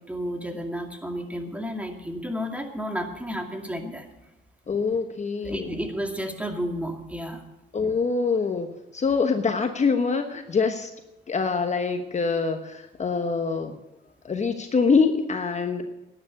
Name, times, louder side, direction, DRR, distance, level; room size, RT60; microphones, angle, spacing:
voice 1, 0.1-4.1 5.4-7.4, equal, 5° right, 3 dB, 2.4 m, -32 dB
voice 2, 4.7-5.8 7.7-10.9 11.3-13.7 14.2-15.8, left 4 dB, 35° left, 6 dB, 1.1 m, -25 dB
11.5 x 10.0 x 8.6 m, 0.95 s
cardioid pair, 90°, 20 cm